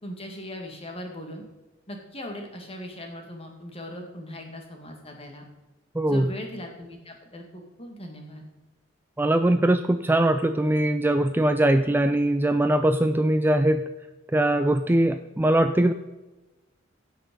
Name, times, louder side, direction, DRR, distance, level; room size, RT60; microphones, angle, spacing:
voice 1, 0.0-1.4 1.9-5.4 6.1-8.4, left 1 dB, 30° left, 2 dB, 2.2 m, -39 dB
voice 2, 5.9-6.3 9.2-13.8 14.3-15.9, right 1 dB, 10° right, 8 dB, 0.4 m, -21 dB
16.0 x 5.7 x 5.4 m, 1.1 s
head